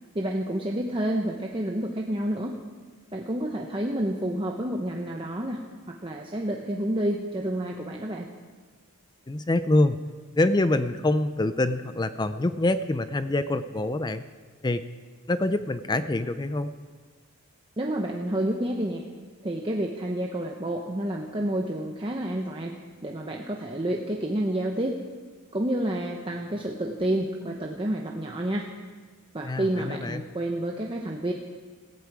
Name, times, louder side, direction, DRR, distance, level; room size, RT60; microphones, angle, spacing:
voice 1, 0.1-2.6 3.1-5.6 5.9-8.3 17.8-19.0 19.4-22.8 23.0-25.0 25.5-28.7 29.3-31.3, right 1 dB, 25° right, 1 dB, 0.9 m, -29 dB
voice 2, 9.3-10.0 10.4-14.2 14.6-14.8 15.3-16.7 29.4-30.2, left 2 dB, 20° left, 12 dB, 0.4 m, -25 dB
18.0 x 15.0 x 4.8 m, 1.5 s
head